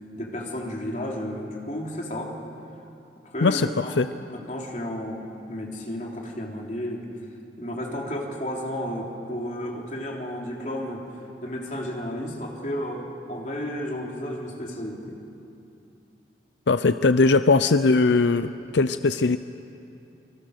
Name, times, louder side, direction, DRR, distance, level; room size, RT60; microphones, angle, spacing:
voice 1, 0.2-2.4 3.2-4.0 4.3-5.2 5.5-7.1 7.6-11.1 11.4-15.2, equal, 45° left, -1 dB, 3.5 m, -32 dB
voice 2, 3.4-4.1 16.7-19.4, left 3 dB, 90° left, 11 dB, 0.6 m, -20 dB
28.5 x 24.0 x 6.6 m, 2.7 s
head